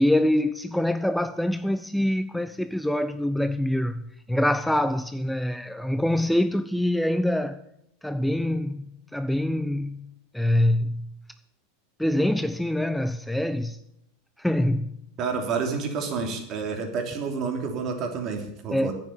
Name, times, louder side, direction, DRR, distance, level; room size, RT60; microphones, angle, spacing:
voice 1, 0.0-7.6 8.0-8.9 9.1-10.0 10.3-11.1 12.0-13.8 14.4-14.9 18.7-18.9, left 1 dB, ahead, 0.6 m, -25 dB
voice 2, 15.2-18.9, right 5 dB, 40° right, 3.1 m, -29 dB
10.0 x 9.0 x 8.5 m
figure-of-eight pair, 85°, 0 cm